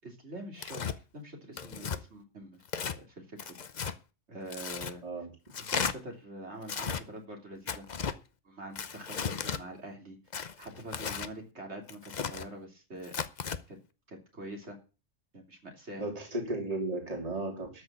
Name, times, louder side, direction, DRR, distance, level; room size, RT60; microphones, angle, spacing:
voice 1, 0.0-0.8 1.1-3.6 4.3-5.0 5.6-7.9 8.4-10.2 10.6-13.1 13.7-13.8 14.1-14.8 15.3-16.0, right 1 dB, 60° right, 1 dB, 3.7 m, -45 dB
Tearing, 0.6-1.0 1.6-2.0 2.7-3.0 3.4-4.0 4.5-4.9 5.5-5.9 6.6-7.0 7.7-8.2 8.8-9.6 10.3-11.3 11.9-12.5 13.0-13.6, left 6 dB, 40° left, 0.8 m, -35 dB
voice 2, 16.0-17.8, right 2 dB, 30° right, 1 dB, 3.0 m, -35 dB
13.0 x 6.5 x 8.6 m, 0.33 s
omnidirectional pair, 1.3 m